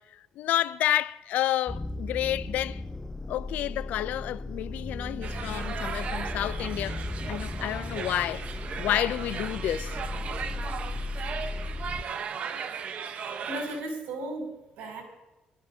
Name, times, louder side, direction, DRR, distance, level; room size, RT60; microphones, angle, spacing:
voice 1, 0.0-2.8 3.3-7.0 7.3-8.4 8.8-10.0, left 13 dB, 80° left, 0.4 m, -30 dB
sound 1, 1.7-12.0, left 2 dB, 15° left, 0.6 m, -36 dB
sound 2, 5.2-13.8, right 7 dB, 55° right, 0.9 m, -37 dB
voice 2, 13.5-15.0, right 1 dB, 85° right, 6.1 m, -35 dB
24.0 x 14.0 x 2.8 m
cardioid pair, 120°, 3 cm